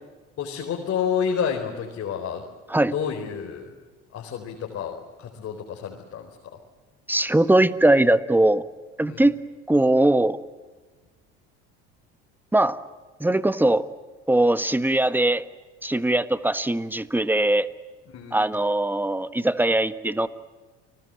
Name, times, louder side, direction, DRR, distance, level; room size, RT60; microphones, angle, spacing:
voice 1, 0.4-2.4 2.9-3.7 4.1-6.3 9.1-9.2 18.1-18.4, left 7 dB, 50° left, 1 dB, 4.4 m, -29 dB
voice 2, 7.1-8.6 9.0-9.3 9.7-10.4 12.5-12.8 13.2-13.9 14.3-15.4 15.8-17.7 18.3-20.3, right 1 dB, 5° right, 13 dB, 1.4 m, -20 dB
30.0 x 20.0 x 7.8 m, 1.3 s
hypercardioid pair, 75°, 31 cm